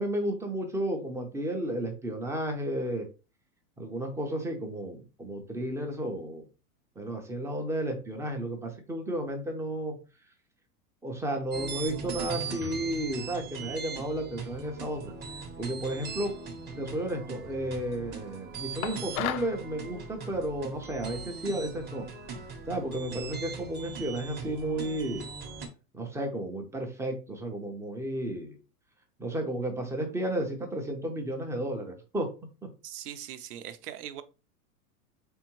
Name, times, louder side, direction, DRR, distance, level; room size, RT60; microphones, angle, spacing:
voice 1, 0.0-3.1 3.8-6.5 7.0-10.0 11.0-15.1 15.6-16.3 16.8-22.0 22.7-25.3 25.9-28.6 29.2-32.3 32.6-32.7, right 1 dB, 5° right, 0.4 m, -33 dB
sound 1, 11.5-25.7, right 5 dB, 20° right, 0.8 m, -40 dB
sound 2, 18.8-19.6, left 11 dB, 65° left, 0.5 m, -33 dB
voice 2, 32.8-34.2, right 11 dB, 75° right, 0.7 m, -40 dB
3.5 x 3.5 x 3.0 m
hypercardioid pair, 115°, 46 cm